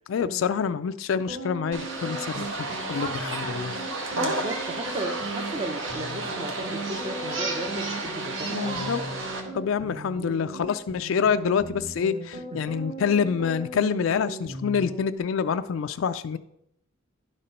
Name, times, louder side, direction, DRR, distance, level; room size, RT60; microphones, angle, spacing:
voice 1, 0.1-3.8 8.5-9.0 9.5-16.4, left 6 dB, 70° left, 10 dB, 0.4 m, -27 dB
sound 1, 1.3-15.2, right 2 dB, 45° right, 2.2 m, -38 dB
sound 2, 1.7-9.4, right 2 dB, 70° right, 1.2 m, -32 dB
voice 2, 4.2-8.8 12.5-12.7, right 2 dB, 30° right, 8 dB, 0.7 m, -35 dB
11.0 x 4.3 x 5.1 m, 0.78 s
head